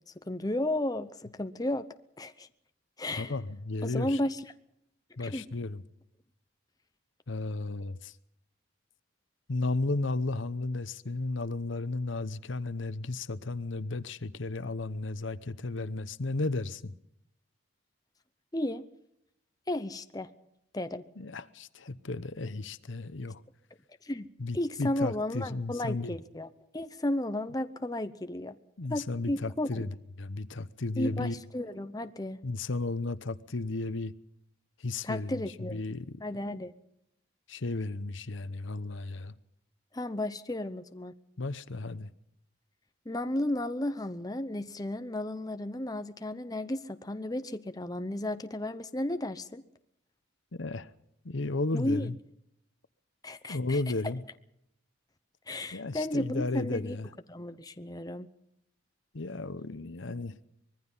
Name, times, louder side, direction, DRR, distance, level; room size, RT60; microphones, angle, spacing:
voice 1, 0.3-1.9 2.2-2.5 3.0-3.4 3.8-4.4 5.2-5.4 18.5-18.8 19.7-20.3 20.7-21.0 24.0-24.3 24.5-26.5 26.7-28.6 28.9-29.8 31.0-32.4 35.0-35.8 36.2-36.7 39.9-41.1 43.1-49.6 51.7-52.1 53.2-53.8 55.5-57.0 57.3-58.3, left 1 dB, 20° left, 0.8 m, -33 dB
voice 2, 3.2-4.2 5.2-5.8 7.3-8.2 9.5-16.9 21.2-23.4 24.4-26.2 28.8-31.4 32.4-34.1 34.8-36.1 37.5-39.3 41.4-42.1 50.5-50.9 51.2-52.2 53.5-54.2 55.7-57.1 59.1-60.4, left 2 dB, 70° left, 0.9 m, -34 dB
25.0 x 21.0 x 5.6 m
head